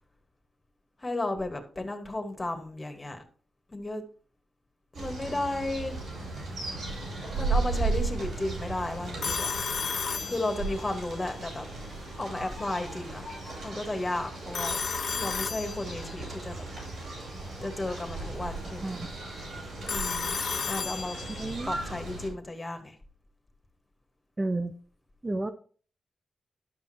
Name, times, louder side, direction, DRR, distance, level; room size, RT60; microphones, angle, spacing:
voice 1, 1.0-3.2 3.7-4.0 4.9-5.9 7.3-9.5 10.2-11.7 12.2-13.2 13.6-14.8 15.1-16.7 17.6-19.0 19.9-20.4 20.7-21.2 21.7-23.0, left 2 dB, 30° left, 5 dB, 2.4 m, -33 dB
sound 1, 4.9-22.3, right 3 dB, 75° right, 5.6 m, -36 dB
Telephone, 9.2-11.0 14.5-16.2 19.9-21.6, left 5 dB, 65° left, 0.7 m, -33 dB
voice 2, 21.4-21.7 24.4-24.7 25.2-25.5, right 2 dB, 25° right, 8 dB, 0.8 m, -31 dB
11.5 x 5.8 x 4.6 m, 0.43 s
cardioid pair, 55°, 0 cm